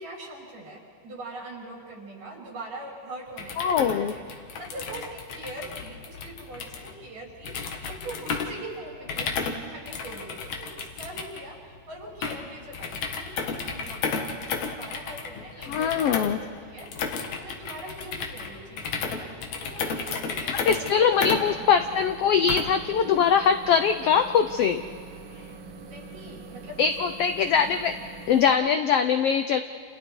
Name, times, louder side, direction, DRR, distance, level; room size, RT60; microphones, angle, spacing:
voice 1, 0.0-21.7 25.8-26.9 27.5-27.7, right 1 dB, 80° right, -3 dB, 7.5 m, -42 dB
sound 1, 3.3-22.9, left 5 dB, 65° left, 2.9 m, -33 dB
voice 2, 3.6-4.1 15.7-16.4 20.7-24.8 26.8-27.9 28.3-29.6, left 7 dB, 85° left, 8 dB, 1.3 m, -22 dB
sound 2, 21.1-28.5, right 3 dB, 55° right, 1.4 m, -44 dB
29.5 x 29.5 x 4.7 m, 2.2 s
omnidirectional pair, 3.7 m